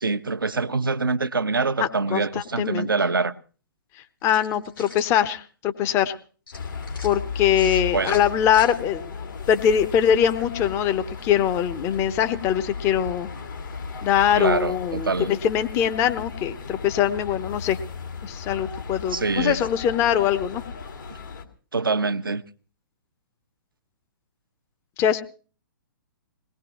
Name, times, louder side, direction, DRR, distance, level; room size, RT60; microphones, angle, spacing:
voice 1, 0.0-3.3 7.6-8.2 14.3-15.3 19.1-19.6 21.1-21.2 21.7-22.4, right 4 dB, 75° right, 0.9 m, -25 dB
voice 2, 1.8-2.9 4.2-6.2 7.0-9.1 9.5-13.3 14.0-17.8 18.2-20.6 25.0-25.2, left 9 dB, 25° left, 1.0 m, -22 dB
sound 1, 4.2-5.1 6.5-7.1 8.0-8.7, left 3 dB, 80° left, 4.9 m, -43 dB
sound 2, 6.5-21.4, left 5 dB, 60° left, 2.2 m, -35 dB
22.0 x 19.0 x 3.1 m
figure-of-eight pair, 120°, 12 cm